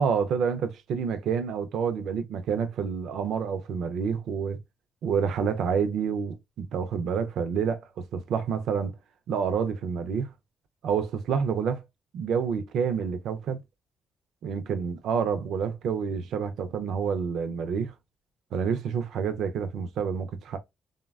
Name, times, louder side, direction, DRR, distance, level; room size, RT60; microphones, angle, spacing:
voice 1, 0.0-4.6 5.0-9.0 9.3-10.3 10.8-11.8 12.1-13.6 14.4-17.9 18.5-20.6, right 6 dB, 75° right, 0.4 m, -28 dB
3.2 x 2.1 x 2.3 m
cardioid pair, 90°, 0 cm